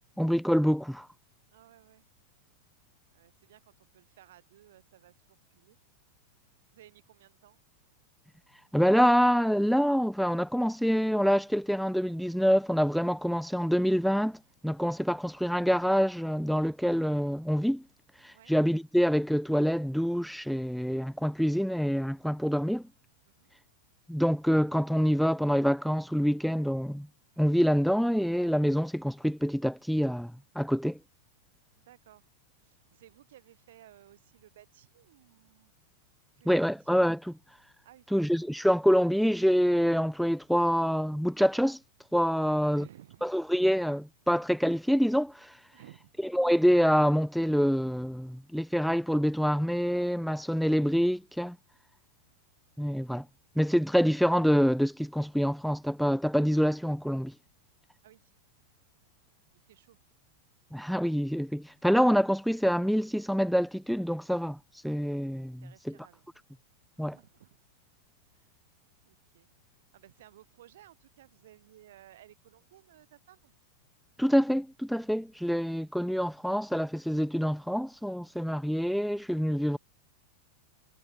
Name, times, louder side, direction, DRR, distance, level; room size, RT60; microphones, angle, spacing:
voice 1, 0.2-1.1 8.7-17.8 18.2-22.8 24.1-27.1 27.4-31.0 36.5-37.4 38.1-41.8 42.1-42.9 43.2-45.5 46.3-51.6 52.8-53.3 53.6-57.3 60.7-64.6 64.8-65.9 67.0-67.2 74.2-79.8, equal, ahead, 0.5 m, -26 dB
voice 2, 1.5-2.1 3.1-5.8 6.7-7.6 18.3-18.5 23.3-23.5 31.8-32.3 32.6-35.7 36.4-36.9 37.8-38.2 42.4-43.4 45.7-46.1 58.0-58.3 59.0-59.2 59.5-60.0 65.6-66.3 67.0-67.6 68.3-68.6 69.1-69.5 69.9-73.5, right 13 dB, 55° right, 4.7 m, -57 dB
figure-of-eight pair, 90°, 0 cm